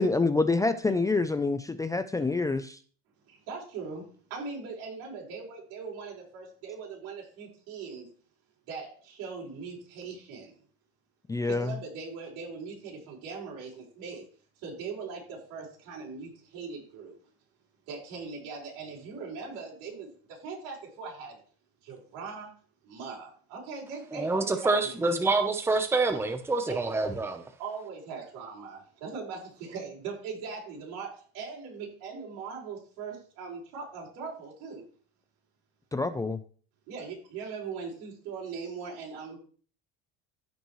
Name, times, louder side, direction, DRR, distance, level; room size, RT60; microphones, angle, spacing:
voice 1, 0.0-2.8 11.3-11.7 35.9-36.4, left 3 dB, 10° left, 11 dB, 0.4 m, -26 dB
voice 2, 3.3-4.0 4.3-8.1 8.7-10.5 11.4-14.2 14.6-17.2 17.9-21.4 21.8-22.5 22.8-25.2 26.7-26.8 27.6-34.8 36.9-39.4, right 5 dB, 80° right, -4 dB, 5.0 m, -40 dB
voice 3, 24.1-27.4, right 3 dB, 10° right, 7 dB, 0.8 m, -27 dB
14.5 x 5.3 x 3.1 m, 0.43 s
cardioid pair, 120°, 30 cm